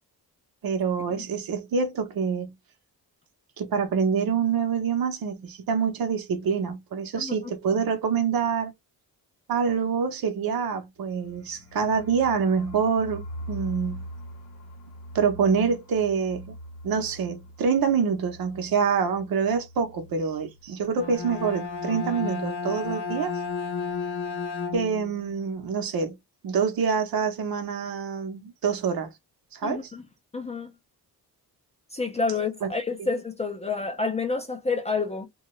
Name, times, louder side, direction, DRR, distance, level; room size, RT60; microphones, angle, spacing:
voice 1, 0.6-2.5 3.6-8.7 9.5-14.0 15.1-16.5 16.8-23.4 24.7-26.2 26.4-29.1 29.5-29.9, right 6 dB, 65° right, 0.8 m, -26 dB
voice 2, 7.2-7.5 29.6-30.0 30.3-30.7 31.9-35.3, left 4 dB, 20° left, 0.4 m, -29 dB
sound 1, 11.0-20.7 21.0-21.1 21.4-21.9, equal, 40° left, 0.8 m, -42 dB
Bowed string instrument, 20.8-25.1, left 5 dB, 85° left, 0.8 m, -32 dB
2.7 x 2.3 x 3.0 m
wide cardioid pair, 170°, 38 cm